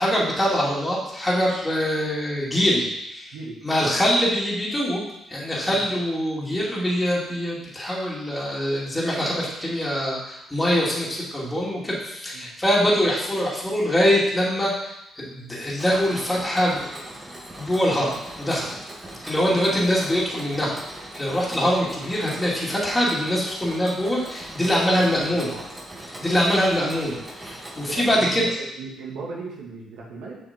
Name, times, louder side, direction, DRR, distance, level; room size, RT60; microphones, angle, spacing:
voice 1, 0.0-3.3 3.6-5.0 5.3-14.9 15.1-17.0 17.6-18.7 19.2-20.7 21.1-25.5 26.2-28.4, equal, 10° left, -6 dB, 2.5 m, -23 dB
voice 2, 3.3-3.9 5.7-5.8 12.3-12.5 24.9-25.6 27.9-30.4, right 4 dB, 85° right, -3 dB, 2.0 m, -37 dB
Mechanisms, 15.8-28.0, right 1 dB, 20° right, 2.0 m, -40 dB
7.2 x 5.7 x 4.4 m, 0.84 s
cardioid pair, 90°, 0 cm